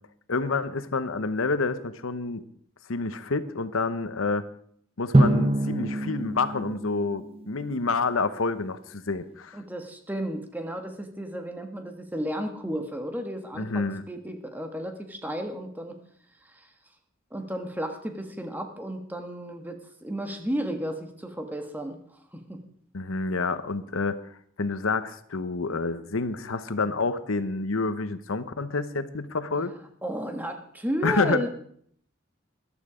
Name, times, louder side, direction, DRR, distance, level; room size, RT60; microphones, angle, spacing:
voice 1, 0.3-2.4 2.9-4.4 5.0-9.6 13.6-14.0 22.9-24.2 24.6-29.7 31.0-31.5, left 3 dB, 90° left, 12 dB, 0.9 m, -28 dB
Drum, 5.1-7.8, right 1 dB, 30° right, 0.8 m, -24 dB
voice 2, 9.5-16.0 16.4-16.7 17.3-22.0 22.3-22.6 30.0-31.5, equal, 10° right, 5 dB, 1.5 m, -33 dB
14.0 x 12.0 x 5.0 m, 0.62 s
head